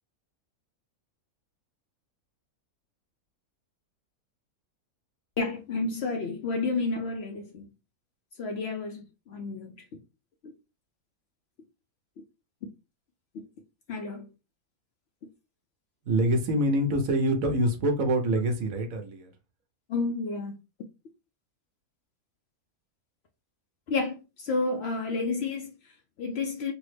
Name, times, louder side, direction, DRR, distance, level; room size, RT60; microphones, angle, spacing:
voice 1, 5.4-7.6 8.4-9.8 10.4-10.5 13.9-14.3 19.9-20.5 23.9-26.7, left 3 dB, 70° left, 0.6 m, -31 dB
voice 2, 16.0-19.3, right 1 dB, 70° right, 1.2 m, -25 dB
3.5 x 2.0 x 3.1 m
omnidirectional pair, 1.6 m